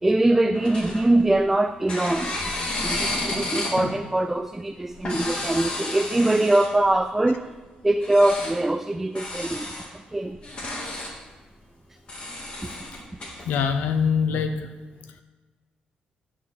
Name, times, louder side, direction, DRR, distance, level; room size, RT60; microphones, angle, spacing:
voice 1, 0.0-2.4 2.8-7.6 7.8-10.4, right 1 dB, 10° right, 0.3 m, -23 dB
sound 1, 0.5-1.5 1.9-3.9 4.9-6.9 8.0-8.6 9.1-9.9 10.3-11.1 12.1-13.6, left 2 dB, 40° left, 2.0 m, -31 dB
voice 2, 13.5-14.7, left 6 dB, 90° left, 0.8 m, -23 dB
9.9 x 4.3 x 7.3 m
cardioid pair, 130°, 3 cm